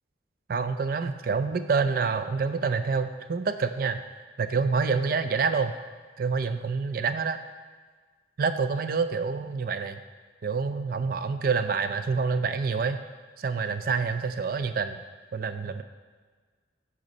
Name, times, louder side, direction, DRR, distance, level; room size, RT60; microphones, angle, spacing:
voice 1, 0.5-4.0 4.4-5.7 6.2-7.4 8.4-10.0 10.4-13.0 13.4-15.0 15.3-15.8, right 5 dB, 50° right, 10 dB, 0.4 m, -27 dB
8.0 x 4.0 x 5.3 m, 1.5 s
head